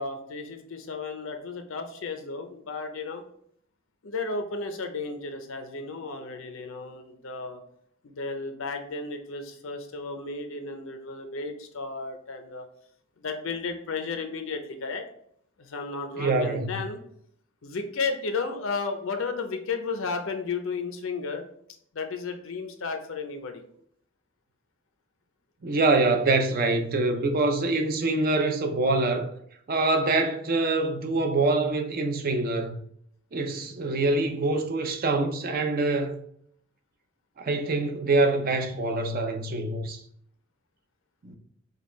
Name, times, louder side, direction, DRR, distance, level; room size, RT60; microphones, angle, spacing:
voice 1, 0.0-3.2 4.0-7.6 8.0-12.7 13.2-15.0 15.6-17.0 17.6-21.5 21.9-23.6, left 4 dB, 70° left, 0.6 m, -33 dB
voice 2, 16.2-16.7 25.6-29.3 29.7-32.8 33.3-36.2 37.4-40.0 41.2-41.4, right 2 dB, 45° right, 0.5 m, -25 dB
5.2 x 2.3 x 3.1 m
head